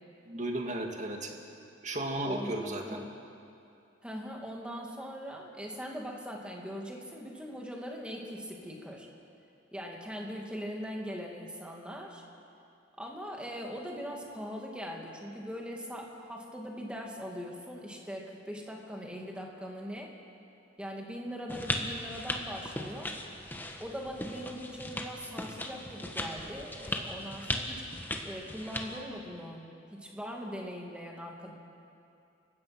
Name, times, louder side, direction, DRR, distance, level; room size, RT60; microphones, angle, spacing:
voice 1, 0.3-1.4 1.8-3.0, right 1 dB, 40° right, 2 dB, 2.3 m, -34 dB
voice 2, 2.2-3.1 4.0-9.1 9.7-12.2 13.0-20.1 20.8-23.1 23.8-27.8 28.2-31.5, equal, 5° right, -1 dB, 2.6 m, -41 dB
sound 1, 21.5-29.0, left 1 dB, 10° left, 1.5 m, -37 dB
29.5 x 16.0 x 6.2 m, 2.6 s
head